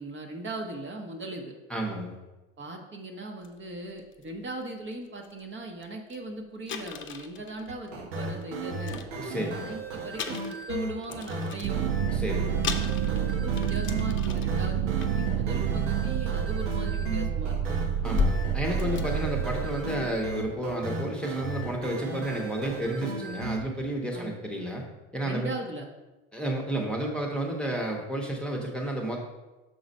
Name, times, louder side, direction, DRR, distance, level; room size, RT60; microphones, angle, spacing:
voice 1, 0.0-1.6 2.6-8.9 9.5-11.9 13.1-17.9 18.7-18.9 24.1-24.3 25.2-25.9, right 2 dB, 30° right, 2 dB, 1.3 m, -39 dB
voice 2, 1.7-2.2 9.2-9.7 12.0-12.6 18.0-24.8 25.1-25.5 26.3-29.2, right 1 dB, 5° left, -1 dB, 1.2 m, -31 dB
sound 1, 3.4-3.5 4.0-4.2 4.9-5.0 5.2-5.4 5.8-5.9 6.1-6.2 6.7-8.4 8.8-9.7 10.1-11.8 12.3-12.4 12.6-14.6 15.0-15.3 16.4-16.5 16.9-19.9, left 6 dB, 35° left, 0.8 m, -36 dB
sound 2, 7.7-23.6, right 2 dB, 90° right, 1.2 m, -35 dB
Blood Drone, 11.6-20.3, right 9 dB, 65° right, 0.6 m, -29 dB
6.4 x 3.9 x 5.4 m, 1.1 s
hypercardioid pair, 85°, 36 cm